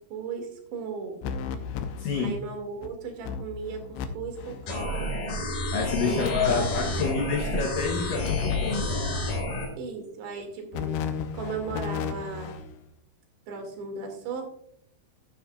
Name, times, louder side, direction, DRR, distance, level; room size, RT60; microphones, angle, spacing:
voice 1, 0.0-1.4 2.2-5.4 6.0-7.2 9.8-10.9 11.3-12.6 13.5-14.4, right 4 dB, 85° right, 3 dB, 4.4 m, -36 dB
sound 1, 1.2-2.4 2.8-2.9 3.2-4.1 4.3-4.7 6.0-7.2 8.2-9.2 10.7-12.7, left 7 dB, 90° left, 3.0 m, -33 dB
voice 2, 2.0-2.4 5.7-9.0, left 5 dB, 75° left, 1 dB, 2.1 m, -28 dB
sound 2, 4.7-9.7, left 1 dB, 50° left, 4.1 m, -30 dB
13.5 x 10.0 x 2.3 m, 0.67 s
omnidirectional pair, 5.0 m